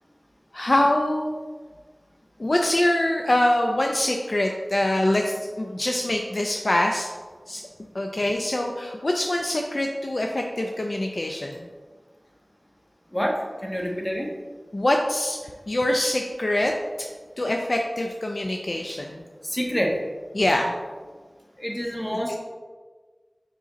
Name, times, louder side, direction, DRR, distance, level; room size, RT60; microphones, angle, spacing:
voice 1, 0.5-1.4 2.4-7.1 7.5-7.6 7.9-11.7 14.7-15.4 15.7-17.1 17.4-19.2 20.3-20.7, left 1 dB, 55° left, 2 dB, 0.5 m, -24 dB
voice 2, 13.1-14.3 19.4-20.0 21.6-22.4, equal, 20° left, 0 dB, 1.3 m, -27 dB
5.3 x 5.0 x 4.0 m, 1.4 s
wide cardioid pair, 40°, 0 cm